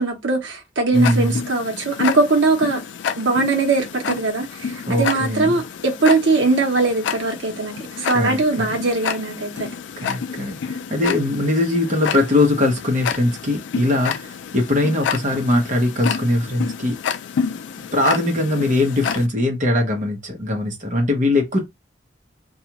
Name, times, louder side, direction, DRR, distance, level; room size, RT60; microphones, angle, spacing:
voice 1, 0.0-2.8 3.2-9.7, right 3 dB, 85° right, 0.9 m, -20 dB
Tick-tock, 0.9-19.3, left 7 dB, 80° left, 0.3 m, -29 dB
voice 2, 0.9-1.4 4.9-5.6 8.1-8.7 10.0-17.0 17.8-21.6, left 1 dB, 45° right, 1.0 m, -21 dB
2.5 x 2.4 x 2.9 m
head